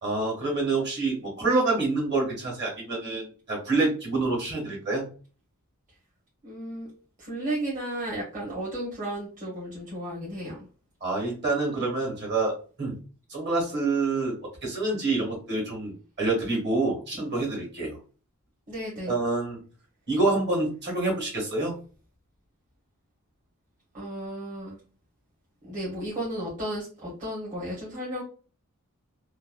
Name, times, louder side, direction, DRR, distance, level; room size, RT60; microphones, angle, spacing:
voice 1, 0.0-5.0 11.0-12.9 13.3-14.4 14.6-18.0 19.1-19.6 20.1-21.7, right 3 dB, 50° right, -1 dB, 1.5 m, -27 dB
voice 2, 6.4-6.9 7.2-10.7 18.7-19.1 23.9-24.8 25.6-28.2, right 1 dB, 35° right, -7 dB, 1.0 m, -34 dB
2.9 x 2.3 x 2.3 m, 0.36 s
head